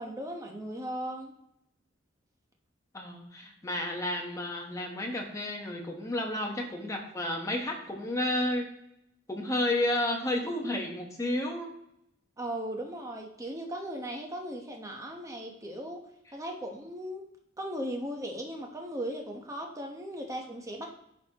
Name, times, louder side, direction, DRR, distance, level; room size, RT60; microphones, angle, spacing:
voice 1, 0.0-1.3 12.4-16.0 16.3-17.2 17.6-20.9, right 1 dB, 15° right, 1 dB, 1.0 m, -37 dB
voice 2, 2.9-8.7 9.3-11.7, left 1 dB, 15° left, 1 dB, 1.2 m, -31 dB
11.0 x 4.1 x 2.9 m, 0.78 s
head